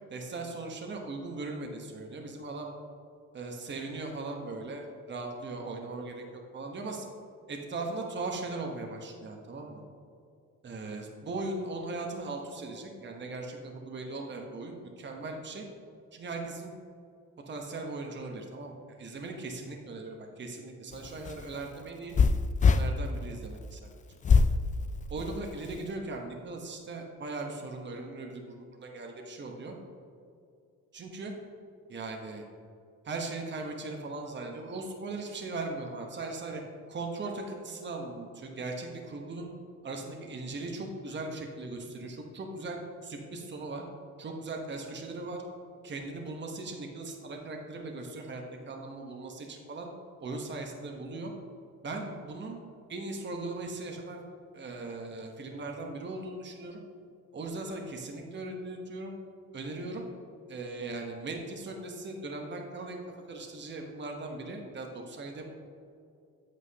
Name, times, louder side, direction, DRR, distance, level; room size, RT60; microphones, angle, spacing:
voice 1, 0.1-2.7 3.3-6.2 6.5-7.1 7.5-9.8 10.6-15.7 16.1-16.7 17.5-18.7 19.0-22.1 22.6-23.9 25.1-29.7 30.9-31.3 31.9-32.4 33.0-36.6 36.9-39.5 39.8-43.8 44.2-45.4 45.8-49.9 50.2-51.3 51.8-52.6 52.9-54.2 54.5-56.8 57.3-59.1 59.5-60.0 60.5-63.0 63.3-65.5, right 3 dB, 35° right, 2 dB, 1.1 m, -39 dB
sound 1, 20.9-22.9 24.2-24.5 25.2-25.8, left 5 dB, 25° left, 0.4 m, -23 dB
8.4 x 7.4 x 2.8 m, 2.4 s
cardioid pair, 90°, 30 cm